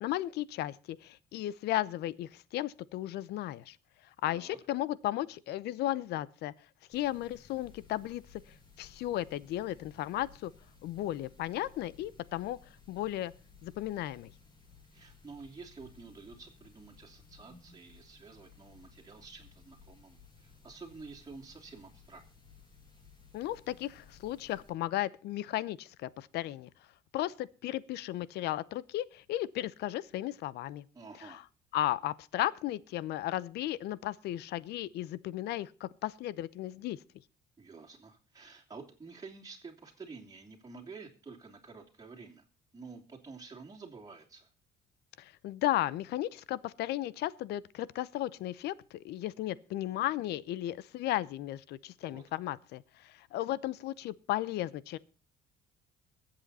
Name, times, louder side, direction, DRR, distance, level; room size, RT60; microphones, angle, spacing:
voice 1, 0.0-3.8 4.2-6.5 6.9-8.4 8.8-10.5 10.8-12.6 12.9-13.3 13.6-14.3 23.3-26.7 27.1-30.8 31.2-31.4 31.7-37.0 45.2-55.0, left 14 dB, 80° left, 0.8 m, -35 dB
voice 2, 4.2-4.6 14.9-22.2 30.9-31.4 37.6-42.4 42.7-44.5 52.0-52.2, right 4 dB, 20° right, 2.9 m, -50 dB
sound 1, 6.9-24.7, left 5 dB, 25° left, 7.1 m, -58 dB
22.0 x 7.8 x 4.2 m
cardioid pair, 110°, 17 cm